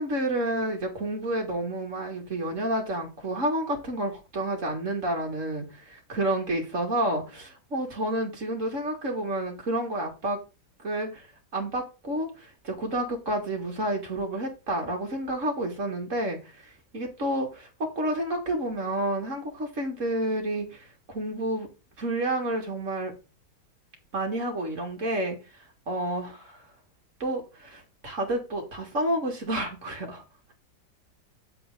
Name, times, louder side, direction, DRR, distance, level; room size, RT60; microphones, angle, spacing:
voice 1, 0.0-10.4 10.8-11.3 11.5-21.7 22.0-23.1 24.1-26.3 27.2-30.2, right 1 dB, 40° right, 2.7 m, -30 dB
8.6 x 7.7 x 3.8 m
omnidirectional pair, 2.0 m